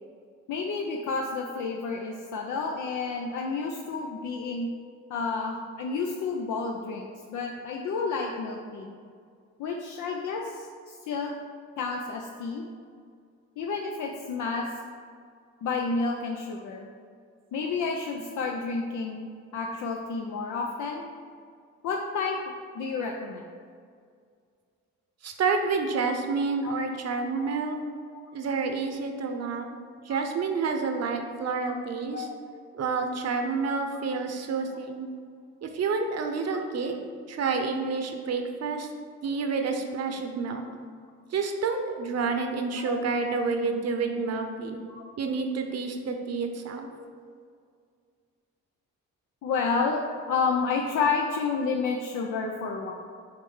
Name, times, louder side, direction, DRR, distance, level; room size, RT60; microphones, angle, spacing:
voice 1, 0.5-4.7 5.1-8.9 9.6-11.3 11.8-12.6 13.6-14.7 15.6-16.9 17.5-19.3 19.5-21.1 21.8-22.4 22.7-23.4 26.6-26.7 27.4-27.5 29.1-29.3 30.1-30.2 31.7-31.8 32.1-32.6 36.5-36.6 40.6-40.7 42.8-42.9 44.1-44.2 44.9-45.0 46.9-47.1 49.4-52.9, left 4 dB, 75° left, 1 dB, 0.6 m, -30 dB
voice 2, 25.2-27.8 28.3-29.8 30.0-32.3 32.7-35.1 35.6-36.9 37.3-38.9 39.2-40.6 41.3-44.8 45.2-46.9, right 4 dB, 55° right, 5 dB, 0.9 m, -29 dB
6.7 x 3.3 x 5.5 m, 2.2 s
cardioid pair, 90°, 30 cm